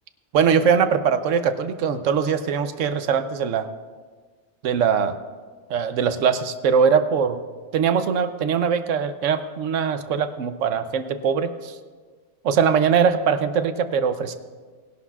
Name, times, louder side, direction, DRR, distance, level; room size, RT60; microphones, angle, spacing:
voice 1, 0.3-3.7 4.6-5.2 5.7-7.4 7.7-11.8 12.4-14.4, right 6 dB, 85° right, 10 dB, 1.1 m, -21 dB
19.5 x 11.5 x 2.4 m, 1.5 s
omnidirectional pair, 1.3 m